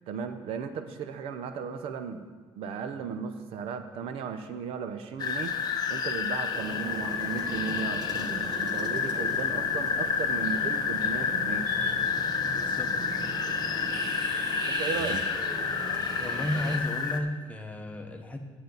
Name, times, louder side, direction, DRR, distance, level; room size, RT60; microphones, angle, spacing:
voice 1, 0.1-11.7 14.7-15.2, right 6 dB, 70° right, 9 dB, 0.8 m, -36 dB
sound 1, 5.2-17.2, left 6 dB, 40° left, 0.7 m, -29 dB
sound 2, 6.5-16.8, right 3 dB, 40° right, 1.1 m, -39 dB
voice 2, 12.5-12.9 16.2-18.4, left 1 dB, 15° left, 4 dB, 1.1 m, -33 dB
11.0 x 8.5 x 4.0 m, 1.5 s
cardioid pair, 115°, 10 cm